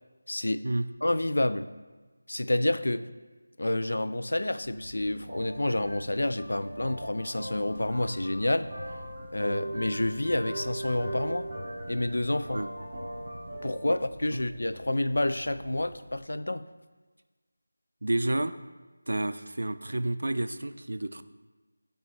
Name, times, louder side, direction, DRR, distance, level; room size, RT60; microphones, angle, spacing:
voice 1, 0.3-0.7 1.0-1.7 2.3-3.1 3.6-8.7 9.3-11.5 11.9-12.6 13.6-16.7, left 1 dB, 80° left, 12 dB, 0.4 m, -29 dB
sound 1, 4.6-16.2, right 1 dB, 15° right, 0.8 m, -40 dB
voice 2, 18.0-18.5 19.1-21.2, right 1 dB, 75° right, 11 dB, 0.3 m, -30 dB
6.2 x 3.4 x 4.5 m, 1.3 s
figure-of-eight pair, 180°, 0 cm